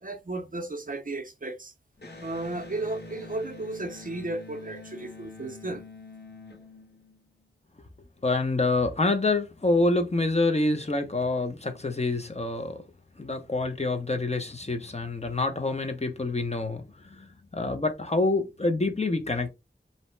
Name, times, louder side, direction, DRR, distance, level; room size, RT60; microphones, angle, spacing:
voice 1, 0.0-1.7 2.2-5.9, right 2 dB, 45° right, 0.5 m, -34 dB
Electric guitar, 2.0-7.5, left 3 dB, 60° left, 0.9 m, -45 dB
voice 2, 8.2-12.8 13.2-19.5, left 2 dB, 35° left, 0.6 m, -27 dB
2.7 x 2.1 x 3.1 m
wide cardioid pair, 45°, 19 cm